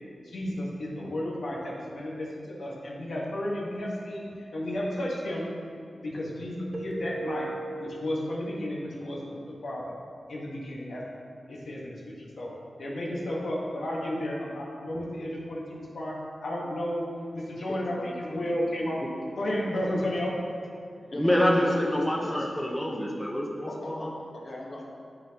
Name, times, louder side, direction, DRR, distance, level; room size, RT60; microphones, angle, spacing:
voice 1, 0.2-2.3 2.6-5.5 6.0-7.5 7.8-9.9 10.3-11.0 11.5-12.5 12.8-16.1 16.4-17.0 17.3-19.0 19.4-20.3, left 1 dB, 75° left, -4 dB, 1.3 m, -32 dB
Keyboard (musical), 6.7-8.7, right 2 dB, 25° right, 0.6 m, -37 dB
voice 2, 17.7-18.2 21.1-22.5 23.6-24.8, left 1 dB, 45° left, -3 dB, 1.3 m, -40 dB
voice 3, 21.2-24.1, equal, 5° left, -2 dB, 0.8 m, -26 dB
11.5 x 4.1 x 2.9 m, 2.3 s
wide cardioid pair, 95°, 0 cm